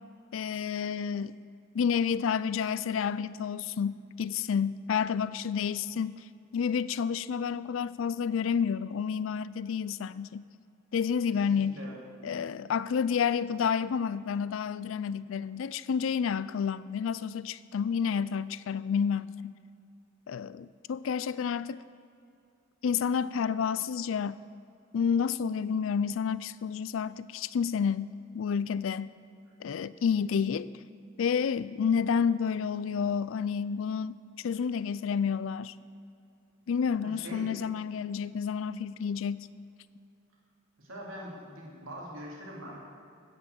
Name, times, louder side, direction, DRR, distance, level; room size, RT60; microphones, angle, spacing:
voice 1, 0.3-1.4 1.7-6.2 6.5-10.5 10.9-11.8 12.2-19.6 20.3-21.8 22.8-24.4 24.9-29.1 29.6-30.7 31.2-35.7 36.7-39.5, left 6 dB, 70° left, 17 dB, 0.4 m, -30 dB
voice 2, 11.3-12.0 37.0-37.6 40.8-42.8, equal, 80° right, -3 dB, 2.9 m, -43 dB
16.0 x 5.9 x 6.4 m, 2.5 s
head